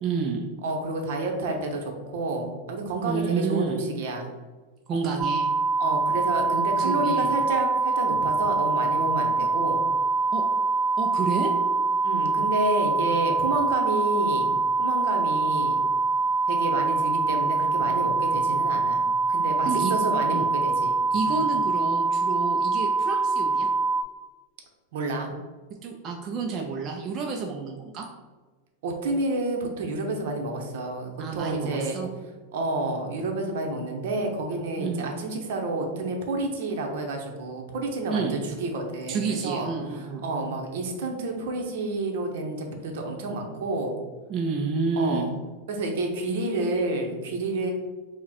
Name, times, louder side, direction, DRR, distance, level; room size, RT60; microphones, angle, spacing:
voice 1, 0.0-0.4 3.0-3.8 4.9-5.5 6.5-7.3 10.3-10.5 11.0-11.5 13.0-13.4 19.7-19.9 20.3-20.5 21.1-23.7 25.8-28.1 31.2-32.1 34.8-35.1 38.1-38.4 39.1-40.2 44.3-45.3, right 4 dB, 25° right, 0 dB, 0.4 m, -29 dB
voice 2, 0.6-4.3 5.8-9.8 12.0-15.9 16.5-21.0 21.2-21.5 24.9-25.3 28.8-32.0 32.5-39.7 40.0-44.0 45.0-45.3 45.7-47.7, right 2 dB, 65° right, 3 dB, 0.8 m, -30 dB
sound 1, 5.2-24.0, right 3 dB, 5° left, 0.8 m, -24 dB
4.9 x 2.1 x 4.2 m, 1.3 s
supercardioid pair, 165°, 0 cm